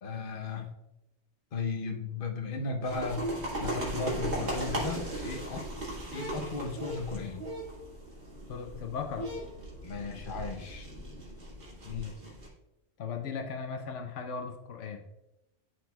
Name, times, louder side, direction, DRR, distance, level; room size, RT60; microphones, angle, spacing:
voice 1, 0.0-0.7 1.5-5.7 6.1-7.5 9.8-10.9, left 4 dB, 50° left, 2 dB, 1.0 m, -35 dB
sound 1, 2.8-12.5, right 1 dB, 65° right, 2.0 m, -37 dB
voice 2, 8.5-9.3 11.8-12.1 13.0-15.0, left 6 dB, 80° left, 5 dB, 1.0 m, -37 dB
12.0 x 4.6 x 2.3 m, 0.91 s
omnidirectional pair, 1.2 m